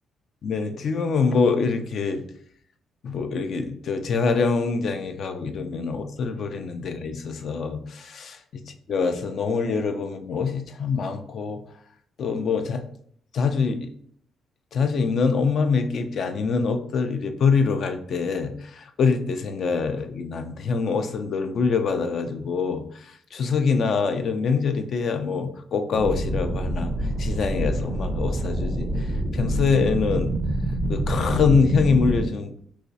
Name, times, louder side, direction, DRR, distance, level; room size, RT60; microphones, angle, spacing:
voice 1, 0.4-2.2 3.0-11.6 12.2-12.8 13.3-13.9 14.7-26.9 27.2-30.4 30.9-32.5, left 5 dB, 60° left, 8 dB, 0.4 m, -25 dB
sound 1, 25.9-32.3, right 1 dB, 30° right, 0.4 m, -26 dB
4.0 x 2.3 x 2.6 m, 0.64 s
cardioid pair, 90°, 0 cm